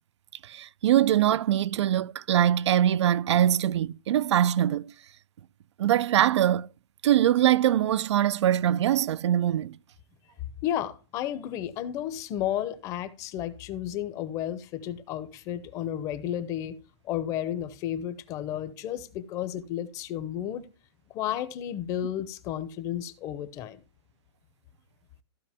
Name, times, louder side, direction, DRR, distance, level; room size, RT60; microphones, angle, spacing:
voice 1, 0.4-4.9 5.8-6.7 7.0-9.8, right 11 dB, 75° right, 0.4 m, -23 dB
voice 2, 10.6-16.8 17.0-20.6 21.1-23.8, left 11 dB, 20° left, 0.7 m, -32 dB
14.5 x 5.0 x 3.5 m
hypercardioid pair, 165°, 15 cm